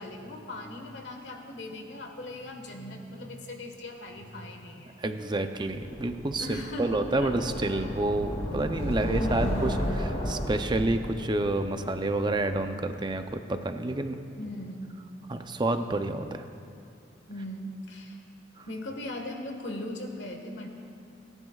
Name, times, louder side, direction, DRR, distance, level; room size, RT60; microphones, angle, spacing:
voice 1, 0.0-4.9 6.4-7.4 9.1-9.7 14.4-15.0 17.3-18.2 18.7-20.7, left 1 dB, 80° left, 3 dB, 1.5 m, -39 dB
voice 2, 5.0-9.7 10.2-14.2 15.3-16.5 18.6-18.7, right 2 dB, 25° right, 7 dB, 0.6 m, -29 dB
sound 1, 5.7-12.7, equal, 40° left, 2.3 m, -34 dB
28.0 x 10.5 x 2.4 m, 2.5 s
head